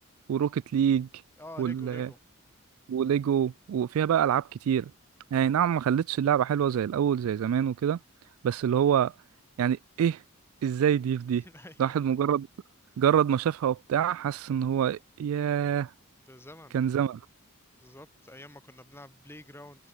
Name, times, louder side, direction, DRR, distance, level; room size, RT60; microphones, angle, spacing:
voice 1, 0.3-1.1 1.6-2.1 2.9-4.9 5.3-8.0 8.4-9.1 9.6-10.2 10.6-11.4 11.8-12.5 13.0-15.9 16.7-17.2, right 9 dB, 75° right, 0.3 m, -26 dB
voice 2, 1.4-2.2 4.1-4.2 8.7-8.8 11.4-12.0 16.2-16.8 17.7-19.9, left 1 dB, 10° left, 3.2 m, -48 dB
head